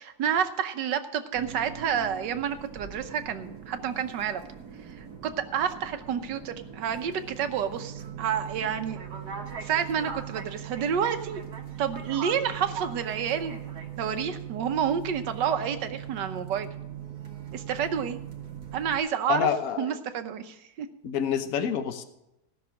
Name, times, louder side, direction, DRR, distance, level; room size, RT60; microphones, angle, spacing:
voice 1, 0.0-4.4 5.0-9.0 9.6-11.4 11.8-13.7 14.0-16.7 17.5-18.2 18.7-19.5 19.8-20.9, right 8 dB, 90° right, 8 dB, 1.5 m, -29 dB
sound 1, 1.3-19.0, right 8 dB, 65° right, 2.0 m, -40 dB
voice 2, 19.3-19.9 21.0-22.0, left 8 dB, 60° left, 8 dB, 1.3 m, -27 dB
16.5 x 6.2 x 6.2 m, 0.86 s
omnidirectional pair, 1.8 m